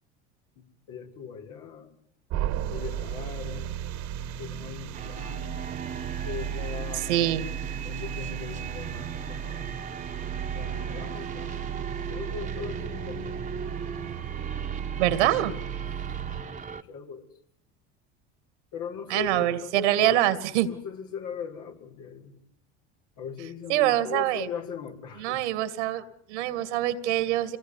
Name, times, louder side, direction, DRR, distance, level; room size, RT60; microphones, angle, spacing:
voice 1, 0.6-2.0 2.7-3.8 4.2-5.6 6.2-7.2 7.7-9.8 10.5-11.6 11.9-13.4 15.1-15.5 16.4-17.2 18.7-20.3 20.6-22.4 23.2-25.4, left 6 dB, 60° left, 2 dB, 5.8 m, -39 dB
sound 1, 2.3-16.4, right 10 dB, 60° right, 2.0 m, -35 dB
sound 2, 4.9-16.8, right 6 dB, 20° right, 1.7 m, -38 dB
voice 2, 6.9-7.5 15.0-15.5 19.1-20.7 23.7-24.5 25.2-27.6, right 13 dB, 80° right, 14 dB, 2.5 m, -25 dB
26.0 x 19.5 x 9.9 m, 0.66 s
hypercardioid pair, 90°, 34 cm